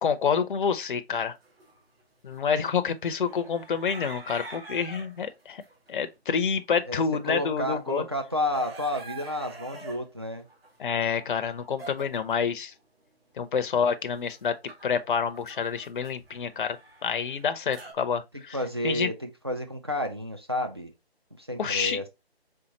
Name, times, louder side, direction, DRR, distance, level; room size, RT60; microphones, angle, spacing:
voice 1, 0.0-1.4 2.2-5.6 5.9-8.0 10.8-12.7 13.4-14.6 14.8-18.6 18.8-19.1 21.6-22.0, left 6 dB, 50° left, 0.5 m, -28 dB
sound 1, 1.3-2.2 2.5-5.9 6.3-7.0 7.3-7.4 7.6-12.4 12.7-12.8 13.3-13.4 13.7-17.9, right 3 dB, 65° right, 1.9 m, -46 dB
voice 2, 6.8-10.4 18.5-20.9 21.4-22.1, left 1 dB, 25° right, 0.4 m, -31 dB
4.3 x 3.5 x 2.8 m
figure-of-eight pair, 155°, 32 cm